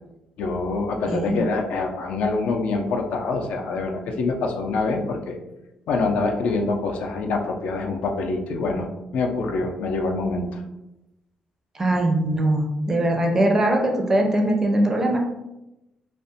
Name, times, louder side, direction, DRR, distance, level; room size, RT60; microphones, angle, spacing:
voice 1, 0.4-5.4 5.9-8.9 9.1-10.6, left 3 dB, 80° left, 3 dB, 0.4 m, -25 dB
voice 2, 1.1-1.4 11.7-15.2, right 1 dB, 20° right, 2 dB, 0.4 m, -21 dB
2.4 x 2.1 x 2.6 m, 0.93 s
cardioid pair, 130°, 2 cm